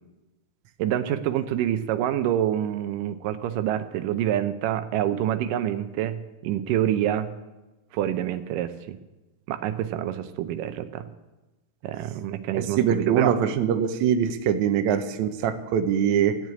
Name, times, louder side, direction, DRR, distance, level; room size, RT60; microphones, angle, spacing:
voice 1, 0.8-7.3 7.9-9.0 9.5-11.1 11.8-13.5, right 11 dB, 85° right, 10 dB, 2.3 m, -27 dB
voice 2, 12.5-16.4, right 8 dB, 70° right, 8 dB, 2.1 m, -23 dB
15.0 x 7.5 x 9.4 m, 1.1 s
omnidirectional pair, 3.7 m